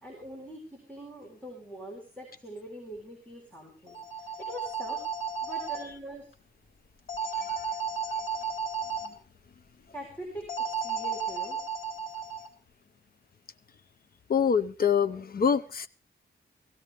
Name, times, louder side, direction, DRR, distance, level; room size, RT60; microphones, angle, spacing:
voice 1, 0.0-5.0 5.4-6.3 9.9-10.5 10.8-11.6, right 1 dB, 5° left, -1 dB, 3.9 m, -43 dB
sound 1, 3.9-5.8 7.1-9.1 10.5-12.5, right 5 dB, 80° left, 4.1 m, -33 dB
voice 2, 14.3-15.9, left 7 dB, 45° left, 13 dB, 0.7 m, -26 dB
16.5 x 16.5 x 3.4 m, 0.35 s
wide cardioid pair, 170°, 20 cm